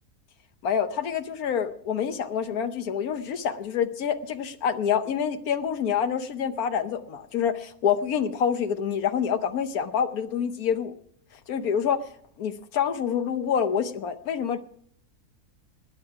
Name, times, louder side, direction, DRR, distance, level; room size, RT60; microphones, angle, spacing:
voice 1, 0.6-10.9 11.5-12.0 12.4-14.6, left 7 dB, 75° left, 10 dB, 1.3 m, -27 dB
19.5 x 9.0 x 4.7 m, 0.66 s
omnidirectional pair, 1.6 m